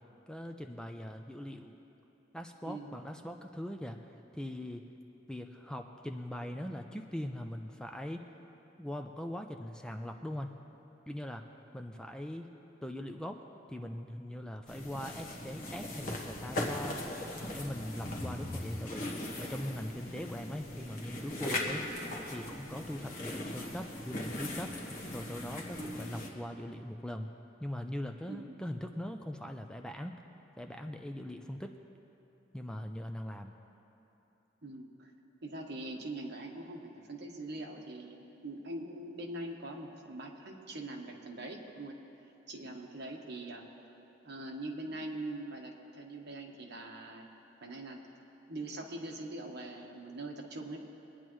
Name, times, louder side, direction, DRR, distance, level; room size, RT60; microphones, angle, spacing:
voice 1, 0.3-1.8 2.3-4.0 4.3-4.8 5.3-8.2 8.8-10.5 11.1-11.4 11.7-12.5 12.8-13.4 13.7-17.0 17.5-19.1 19.4-21.8 22.3-24.7 25.1-27.3 27.6-30.1 30.6-31.7 32.5-33.5, left 1 dB, 5° left, 4 dB, 0.4 m, -41 dB
sound 1, 14.7-26.3, left 1 dB, 50° left, 1.3 m, -39 dB
voice 2, 25.8-26.1 28.3-28.6 34.6-35.1 35.4-42.0 42.5-43.6 44.2-47.3 47.6-48.0 48.5-50.8, right 2 dB, 60° right, 1 dB, 1.3 m, -42 dB
22.5 x 9.9 x 3.1 m, 3.0 s
head